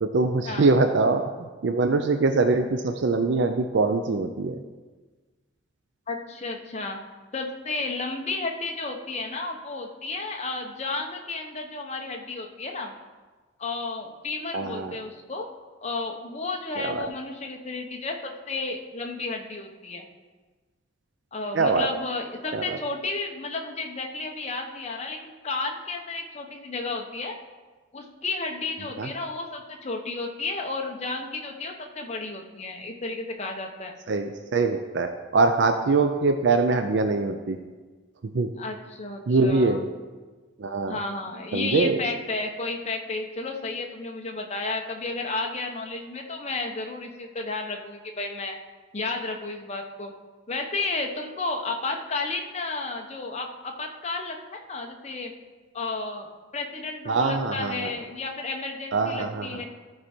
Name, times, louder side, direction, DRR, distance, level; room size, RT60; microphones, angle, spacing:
voice 1, 0.0-4.6 14.5-15.0 16.8-17.1 21.5-21.9 22.5-22.8 29.0-29.1 34.1-37.6 38.3-38.5 39.3-39.9 40.6-41.0 41.5-42.0 57.1-57.9 58.9-59.5, right 3 dB, 65° right, 7 dB, 0.5 m, -23 dB
voice 2, 6.1-7.0 7.3-12.9 13.6-15.5 15.8-20.0 21.3-27.3 27.9-33.9 38.6-39.9 40.9-48.6 48.9-50.1 50.5-55.3 55.7-56.3 56.5-59.7, left 3 dB, 35° left, 2 dB, 0.9 m, -32 dB
14.0 x 4.7 x 4.4 m, 1.3 s
head